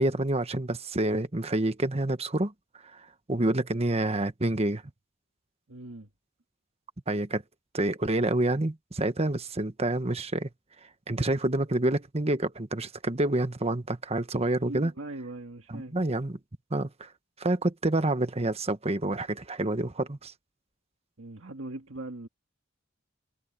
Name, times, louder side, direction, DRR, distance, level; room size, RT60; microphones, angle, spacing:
voice 1, 0.0-2.5 2.9-4.8 7.1-7.4 7.7-10.5 11.1-14.9 15.7-16.4 16.7-17.1 17.4-20.3, right 1 dB, 30° right, 1.3 m, -28 dB
voice 2, 5.7-6.1 14.6-16.0 21.2-22.3, right 2 dB, 75° right, 1.9 m, -40 dB
head